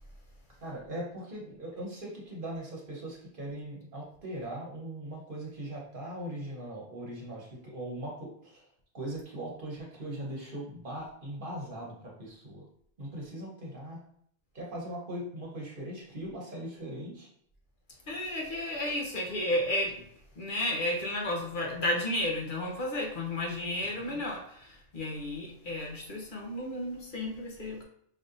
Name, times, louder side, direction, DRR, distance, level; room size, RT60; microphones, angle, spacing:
voice 1, 0.6-8.6 8.9-12.6 13.0-14.0 14.5-17.3 23.9-24.2, right 1 dB, 60° right, -3 dB, 1.2 m, -40 dB
voice 2, 18.1-20.1 20.4-27.8, left 1 dB, 55° left, -2 dB, 1.0 m, -32 dB
5.3 x 2.7 x 2.6 m, 0.67 s
omnidirectional pair, 1.0 m